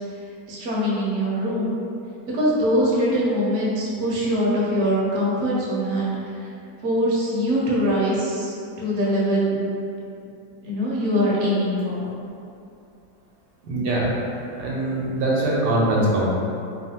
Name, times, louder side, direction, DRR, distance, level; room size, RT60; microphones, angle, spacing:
voice 1, 0.5-1.7 2.3-6.1 6.8-9.6 10.6-12.1, equal, 60° right, -6 dB, 0.8 m, -22 dB
voice 2, 13.6-14.2 14.5-16.3, right 1 dB, 85° right, -5 dB, 1.2 m, -22 dB
3.1 x 2.1 x 2.7 m, 2.6 s
omnidirectional pair, 1.8 m